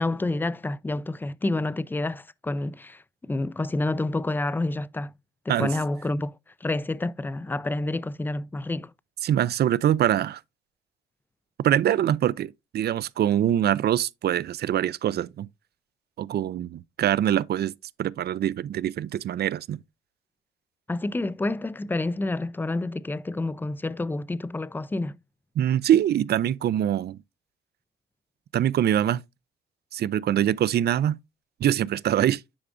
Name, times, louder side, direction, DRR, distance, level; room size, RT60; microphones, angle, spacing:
voice 1, 0.0-5.1 5.5-6.3 6.6-8.9 20.9-25.2, left 2 dB, 10° left, 0.4 m, -28 dB
voice 2, 9.2-10.4 11.6-15.5 16.2-17.7 18.0-19.8 25.6-27.2 28.5-29.2 29.9-31.2 31.6-32.4, right 11 dB, 55° right, 0.4 m, -24 dB
10.0 x 4.8 x 2.5 m
cardioid pair, 90°, 20 cm